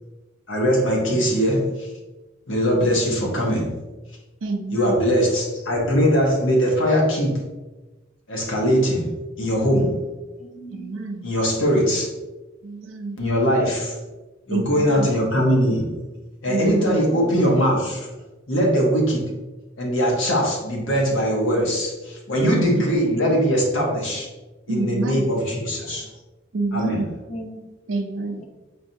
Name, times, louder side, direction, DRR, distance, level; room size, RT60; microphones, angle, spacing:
voice 1, 0.5-1.9 2.5-3.7 4.7-7.4 8.3-9.1 9.4-10.0 11.2-12.1 13.2-14.0 14.5-16.0 16.4-18.1 18.5-19.3 19.8-24.3 24.7-26.1 26.7-27.0, equal, 70° left, -2 dB, 1.0 m, -21 dB
voice 2, 4.4-5.0 10.7-11.3 12.6-13.2 14.5-15.1 16.5-17.0 22.4-22.8 24.7-25.3 26.5-27.2 27.9-28.4, right 3 dB, 70° right, 5 dB, 0.5 m, -28 dB
voice 3, 10.4-11.0 13.4-13.8 17.1-17.4 22.9-23.2 25.5-25.6 27.3-27.7, right 1 dB, 35° left, 4 dB, 0.4 m, -38 dB
4.9 x 2.7 x 2.7 m, 1.2 s
head